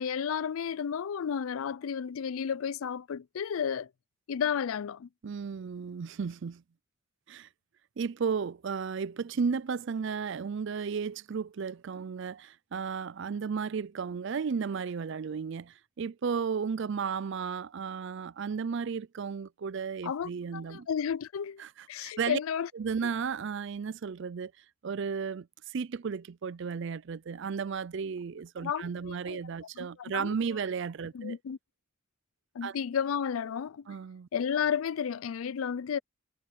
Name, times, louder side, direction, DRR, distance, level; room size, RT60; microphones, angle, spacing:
voice 1, 0.0-3.9 4.3-5.1 20.0-21.6 21.9-22.7 23.0-23.1 28.6-29.4 29.8-30.6 31.1-31.6 32.5-33.9 34.3-36.0, left 7 dB, 75° left, 0.4 m, -32 dB
voice 2, 5.2-6.6 7.3-7.5 8.0-20.9 21.6-21.7 22.0-22.4 22.7-24.5 24.8-31.4 32.6-32.8 33.9-34.3, right 6 dB, 60° right, 0.4 m, -34 dB
head